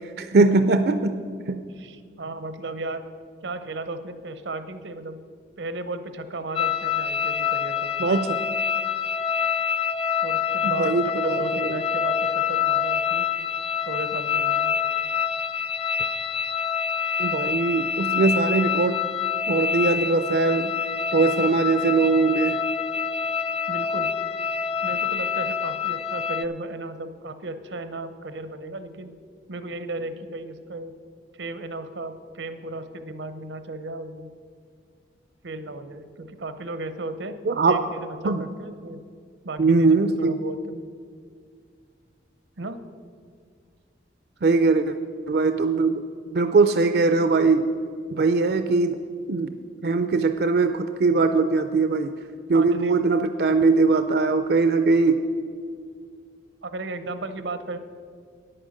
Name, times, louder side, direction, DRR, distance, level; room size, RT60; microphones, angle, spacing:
voice 1, 0.2-1.2 1.5-1.6 8.0-8.4 10.8-11.8 17.2-19.0 19.5-20.7 21.1-22.6 37.5-37.8 38.2-38.4 39.6-40.3 44.4-44.9 45.3-46.0 46.3-47.7 48.1-49.0 49.3-49.5 49.8-52.1 52.5-55.2, right 3 dB, 60° right, 9 dB, 0.4 m, -21 dB
voice 2, 1.8-3.0 3.4-5.2 5.6-7.9 10.2-13.3 13.9-14.7 23.7-24.1 24.8-29.1 29.5-30.9 31.4-34.3 35.4-37.4 37.7-39.0 39.4-39.9 40.2-40.8 42.6-42.8 52.5-53.0 56.6-57.8, right 2 dB, 90° right, 11 dB, 0.8 m, -35 dB
sound 1, 6.5-26.4, left 7 dB, 30° left, 0.3 m, -26 dB
9.9 x 8.8 x 6.4 m, 2.1 s
head